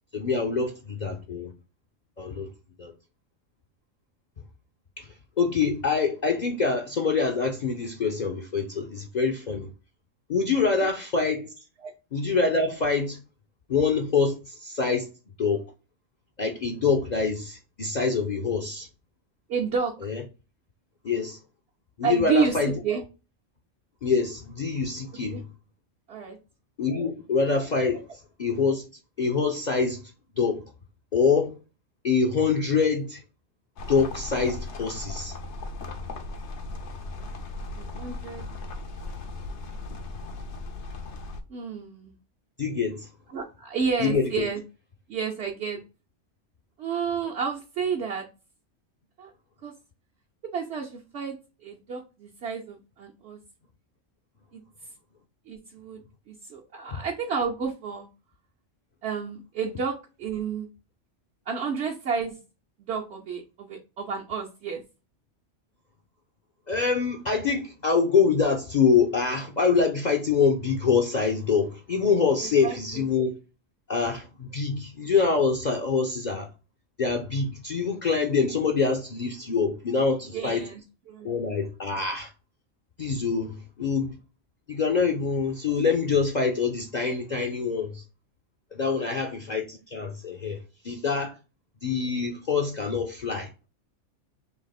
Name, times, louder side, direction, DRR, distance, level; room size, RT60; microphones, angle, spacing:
voice 1, 0.1-1.5 2.2-2.5 2.8-2.9 5.0-5.1 5.4-9.7 10.3-11.5 12.1-13.2 13.7-15.1 15.4-15.6 16.4-18.9 20.0-20.2 21.0-21.4 22.0-22.7 24.0-25.5 26.8-28.1 28.4-28.9 29.2-30.0 30.4-30.6 31.1-31.6 32.0-33.2 33.9-35.3 42.6-43.1 44.0-44.5 56.9-57.0 66.7-73.4 73.9-76.5 77.0-80.7 81.2-82.3 83.0-84.2 84.7-88.0 88.7-90.6 90.8-91.4 91.8-93.5, left 5 dB, 45° left, 0.6 m, -25 dB
voice 2, 19.5-20.1 22.0-23.0 25.3-25.4 26.1-26.4 37.7-38.4 41.5-42.1 43.3-44.6 45.1-45.8 46.8-48.3 49.2-49.3 49.6-49.7 50.5-51.4 51.6-53.4 54.5-54.6 55.5-58.1 59.0-60.7 61.5-62.4 62.9-64.8 72.6-73.1 80.3-80.8 81.1-81.3 89.0-89.1, right 6 dB, 65° right, 1.0 m, -30 dB
sound 1, 33.8-41.4, left 2 dB, 70° left, 1.0 m, -37 dB
3.5 x 2.9 x 4.0 m
omnidirectional pair, 1.3 m